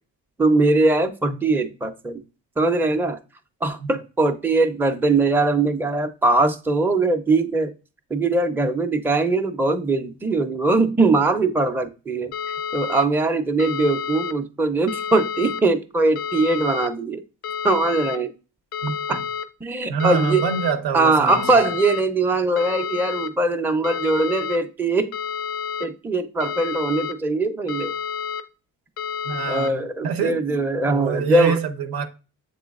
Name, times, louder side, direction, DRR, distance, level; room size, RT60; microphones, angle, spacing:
voice 1, 0.4-2.2 2.6-3.2 3.6-7.7 8.1-17.2 17.6-18.3 19.1-19.2 19.6-20.4 20.9-25.1 25.8-27.9 29.5-31.6, right 2 dB, 5° right, 0.4 m, -21 dB
sound 1, 12.3-13.0 13.6-14.3 14.9-15.6 16.2-16.9 17.4-18.2 18.7-19.4 20.0-20.7 21.3-22.0 22.6-23.3 23.8-24.6 25.1-25.9 26.4-27.1 27.7-28.4 29.0-29.7, left 7 dB, 90° left, 0.5 m, -29 dB
voice 2, 18.8-19.2 19.9-21.6 29.2-30.6 30.9-32.1, right 6 dB, 85° right, 0.7 m, -26 dB
7.4 x 3.1 x 2.3 m
cardioid pair, 75°, 36 cm